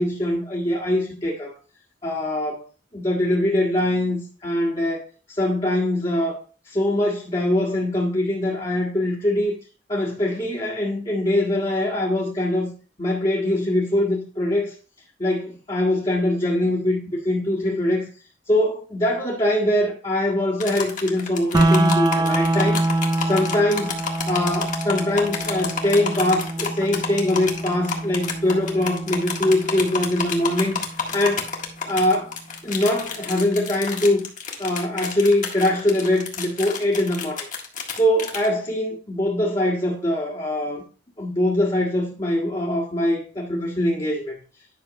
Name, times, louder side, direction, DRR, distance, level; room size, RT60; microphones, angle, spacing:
voice 1, 0.0-1.5 2.0-2.6 2.9-6.4 6.6-9.5 9.9-12.7 13.0-14.7 15.2-18.1 18.5-22.8 23.2-31.5 31.8-32.3 32.6-34.2 34.6-37.5 37.9-40.8 41.2-44.4, left 1 dB, 30° left, 1.7 m, -23 dB
sound 1, 20.6-38.5, left 5 dB, 45° left, 1.7 m, -30 dB
sound 2, 21.5-31.5, right 2 dB, 20° right, 0.4 m, -25 dB
10.5 x 6.2 x 3.1 m
head